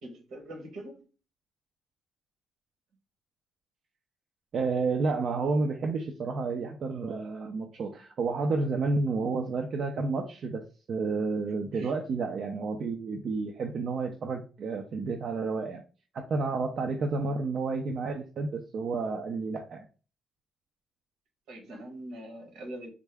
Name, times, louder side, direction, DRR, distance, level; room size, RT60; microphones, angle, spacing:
voice 1, 0.0-1.1 11.7-12.0 21.5-22.9, right 1 dB, 80° right, 3 dB, 1.1 m, -43 dB
voice 2, 4.5-15.8 16.1-19.9, right 4 dB, 60° right, 3 dB, 0.5 m, -30 dB
3.5 x 2.1 x 3.4 m, 0.35 s
cardioid pair, 90°, 0 cm